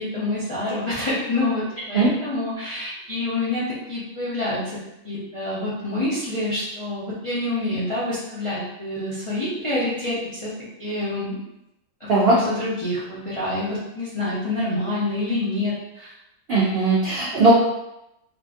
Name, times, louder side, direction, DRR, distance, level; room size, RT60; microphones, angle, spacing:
voice 1, 0.0-4.8 5.0-10.5 10.8-11.4 12.0-16.1, left 2 dB, 35° left, -10 dB, 0.5 m, -27 dB
voice 2, 16.5-17.5, right 3 dB, 70° right, -5 dB, 0.5 m, -18 dB
2.8 x 2.5 x 2.4 m, 0.86 s
omnidirectional pair, 1.6 m